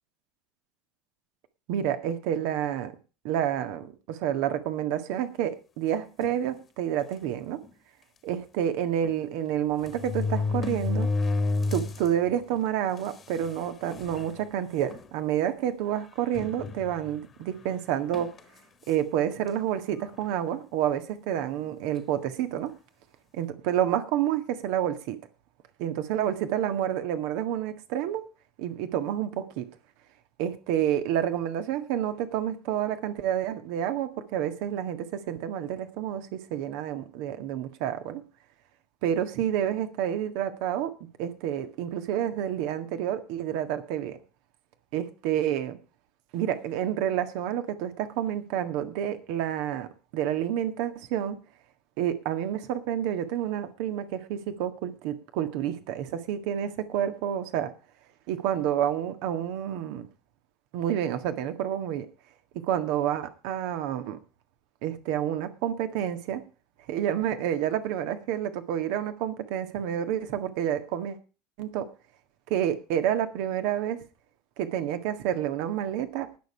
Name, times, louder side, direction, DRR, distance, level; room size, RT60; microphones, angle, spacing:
voice 1, 1.7-2.9 3.2-7.6 8.2-11.1 11.7-18.3 18.9-22.7 23.3-25.2 25.8-28.2 28.6-29.6 30.4-38.2 39.0-40.9 41.2-44.2 44.9-45.8 46.3-49.9 50.1-51.4 52.0-57.7 58.3-60.1 60.7-62.1 62.7-64.2 64.8-66.4 66.9-71.2 71.6-71.9 72.5-74.0 74.6-76.3, right 10 dB, 60° right, 10 dB, 1.7 m, -29 dB
sound 1, 6.2-6.5 7.2-7.3 7.6-7.7 9.0-9.1 9.8-12.1 12.5-12.6 13.5-13.6 13.9-14.3 14.9-15.1 16.3-17.2 18.1-18.4, left 3 dB, 30° left, 1.6 m, -29 dB
19.5 x 7.0 x 4.6 m, 0.34 s
hypercardioid pair, 75°, 0 cm